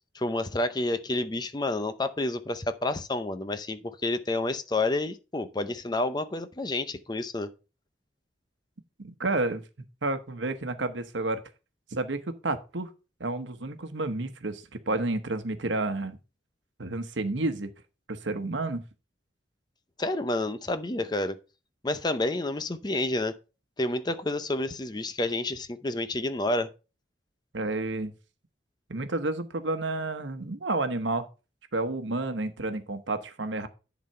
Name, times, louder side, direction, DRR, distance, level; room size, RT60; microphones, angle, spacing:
voice 1, 0.1-7.5 20.0-21.4 21.8-23.4 23.8-26.7, left 2 dB, 20° left, 0.6 m, -29 dB
voice 2, 9.0-9.6 10.0-11.4 11.9-12.9 13.2-16.2 16.8-17.7 18.1-18.8 27.5-28.1 28.9-31.3 31.7-33.7, right 2 dB, 80° right, 1.1 m, -30 dB
10.5 x 4.0 x 5.5 m
head